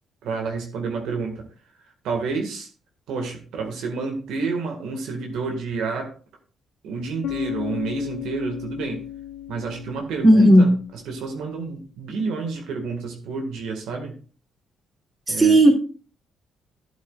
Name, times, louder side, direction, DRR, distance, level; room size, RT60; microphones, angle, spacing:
voice 1, 0.2-1.4 2.0-2.7 3.1-6.1 6.8-9.0 9.5-14.1 15.3-15.6, right 4 dB, 85° right, 2 dB, 1.8 m, -29 dB
Bass guitar, 7.2-11.1, left 11 dB, 85° left, 2.3 m, -34 dB
voice 2, 10.2-10.7 15.3-15.7, right 1 dB, 25° right, 0 dB, 3.1 m, -13 dB
13.5 x 8.1 x 2.4 m, 0.40 s
cardioid pair, 90°, 0 cm